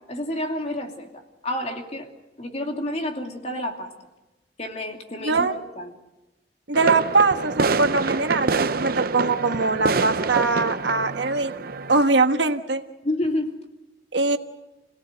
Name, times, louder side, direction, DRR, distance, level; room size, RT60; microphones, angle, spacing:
voice 1, 0.1-2.1 2.4-3.9 4.6-5.9 13.0-13.6, left 1 dB, 35° left, 3 dB, 2.7 m, -29 dB
voice 2, 5.2-5.5 6.7-11.5 11.9-12.8 14.1-14.4, right 3 dB, 75° right, 7 dB, 1.4 m, -22 dB
sound 1, 6.7-12.0, right 4 dB, 55° right, 0.7 m, -26 dB
27.5 x 17.5 x 8.0 m, 1.0 s
head